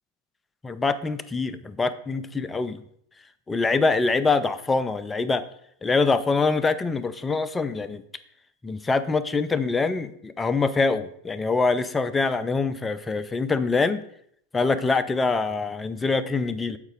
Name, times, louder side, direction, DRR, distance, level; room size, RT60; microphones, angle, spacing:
voice 1, 0.6-2.8 3.5-5.4 5.8-8.0 8.6-14.0 14.5-16.8, left 4 dB, 15° left, 0.4 m, -24 dB
7.9 x 5.1 x 3.7 m
figure-of-eight pair, 90°, 0 cm